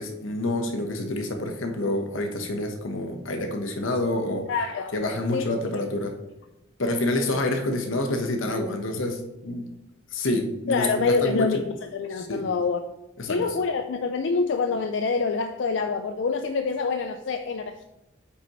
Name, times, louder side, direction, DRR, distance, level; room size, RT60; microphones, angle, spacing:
voice 1, 0.0-4.5 4.9-6.1 6.8-9.7 10.1-11.5 12.2-12.4 13.2-13.4, left 1 dB, 85° left, 4 dB, 1.0 m, -27 dB
voice 2, 4.5-5.0 5.3-5.5 10.7-12.8 13.3-17.8, left 4 dB, 70° left, 7 dB, 0.4 m, -26 dB
8.3 x 5.5 x 3.0 m, 0.94 s
head